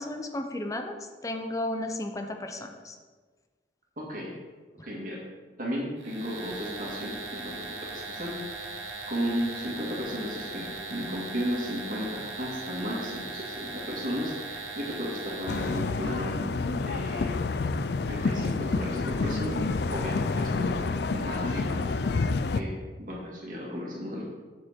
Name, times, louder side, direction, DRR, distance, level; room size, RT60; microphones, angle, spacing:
voice 1, 0.0-3.0, left 1 dB, 20° left, 5 dB, 0.7 m, -34 dB
voice 2, 4.0-4.3 4.8-5.2 5.6-8.7 9.1-16.4 16.7-17.4 18.1-21.8 22.5-24.2, equal, 50° right, -3 dB, 2.2 m, -34 dB
sound 1, 6.0-15.9, right 3 dB, 80° right, 1.5 m, -39 dB
sound 2, 15.5-22.6, left 3 dB, 65° left, 0.4 m, -28 dB
7.5 x 7.4 x 4.4 m, 1.4 s
head